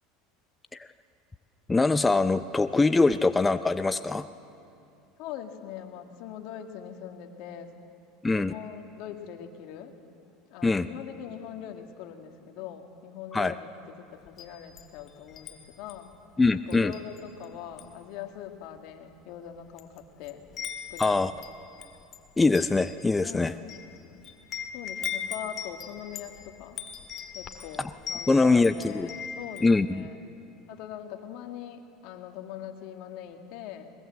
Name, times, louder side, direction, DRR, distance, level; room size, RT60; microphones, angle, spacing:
voice 1, 1.7-4.3 8.2-8.5 10.6-10.9 13.3-13.5 16.4-16.9 21.0-21.3 22.4-23.5 27.8-27.9 28.3-29.1 29.6-30.1, left 3 dB, 15° left, 11 dB, 0.5 m, -23 dB
voice 2, 5.2-7.7 8.3-9.9 10.5-13.7 14.0-16.1 16.7-20.5 20.9-21.2 23.2-23.8 24.7-26.8 27.3-30.2 30.7-33.9, left 10 dB, 65° left, 5 dB, 1.9 m, -42 dB
Wind chime, 14.3-15.5 15.9-16.1 16.7-17.4 17.7-18.0 18.8-18.9 19.5-20.0 20.2-29.7, left 8 dB, 45° left, 1.8 m, -39 dB
21.5 x 21.0 x 7.6 m, 2.7 s
supercardioid pair, 105°, 0 cm